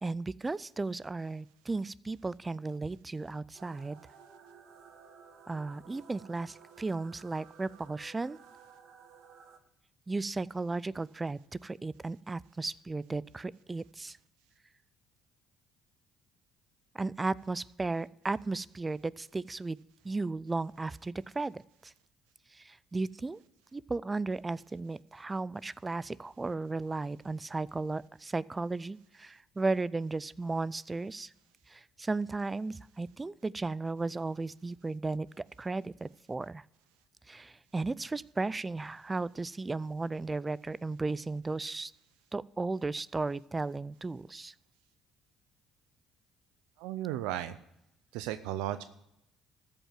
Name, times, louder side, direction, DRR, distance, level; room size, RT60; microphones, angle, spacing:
voice 1, 0.0-4.0 5.5-8.4 10.1-14.2 16.9-19.8 20.0-21.9 22.5-23.4 23.7-31.3 31.7-36.6 37.3-41.9 42.3-44.5, right 3 dB, 20° right, 22 dB, 0.3 m, -35 dB
sound 1, 3.5-9.6, right 6 dB, 70° right, 1.3 m, -55 dB
voice 2, 46.8-47.6 48.1-48.8, right 12 dB, 85° right, 11 dB, 0.5 m, -35 dB
14.0 x 5.3 x 7.5 m, 0.83 s
supercardioid pair, 75°, 0 cm